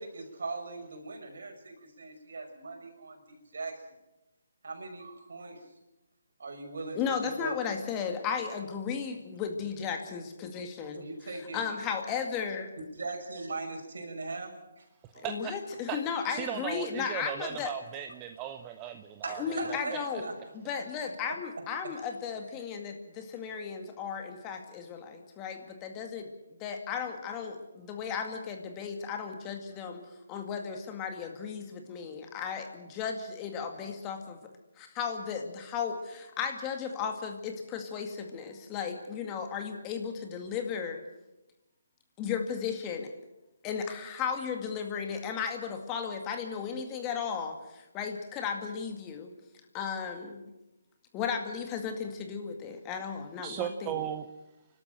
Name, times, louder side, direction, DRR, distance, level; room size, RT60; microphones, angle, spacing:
voice 1, 0.0-3.7 4.6-5.6 6.4-7.6 10.9-11.6 12.8-14.8 15.1-15.3 19.2-20.3 21.9-22.0, right 3 dB, 65° right, 3 dB, 5.6 m, -40 dB
voice 2, 6.9-12.7 15.2-17.7 19.4-20.3 20.5-26.3 26.6-30.0 30.3-34.4 34.8-41.0 42.2-43.1 43.6-49.3 49.7-50.4 51.1-54.1, left 6 dB, 20° left, 4 dB, 2.1 m, -35 dB
voice 3, 16.3-20.2 53.4-54.3, right 11 dB, 20° right, 7 dB, 0.9 m, -37 dB
29.0 x 12.5 x 7.6 m, 0.99 s
figure-of-eight pair, 145°, 0 cm